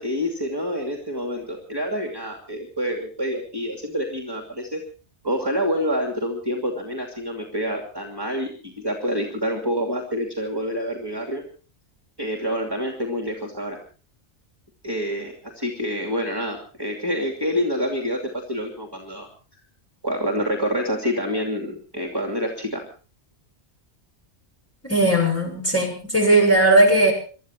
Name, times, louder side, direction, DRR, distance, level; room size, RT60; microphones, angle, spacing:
voice 1, 0.0-4.8 5.2-11.4 12.2-13.8 14.8-19.3 20.0-22.8, equal, 20° right, 2 dB, 2.8 m, -27 dB
voice 2, 24.8-27.1, right 1 dB, 10° left, 0 dB, 6.7 m, -17 dB
24.5 x 13.0 x 4.5 m, 0.39 s
omnidirectional pair, 1.1 m